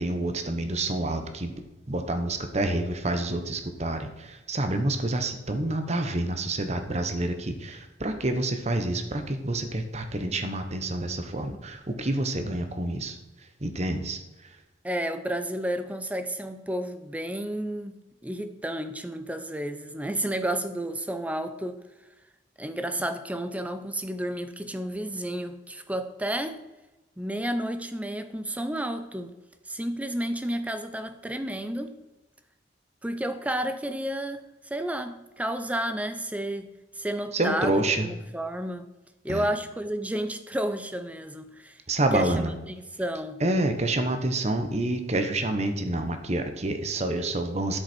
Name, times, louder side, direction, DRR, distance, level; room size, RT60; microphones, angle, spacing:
voice 1, 0.0-1.5 1.9-13.2 13.6-14.2 37.3-38.1 39.3-39.5 41.9-42.5 43.4-47.8, right 1 dB, 40° right, 1.1 m, -28 dB
voice 2, 14.8-21.8 22.6-26.6 27.2-29.3 29.7-32.0 33.0-36.7 37.0-38.9 39.2-41.8 42.1-43.4, right 1 dB, 10° right, 0.6 m, -31 dB
9.9 x 8.0 x 4.5 m
head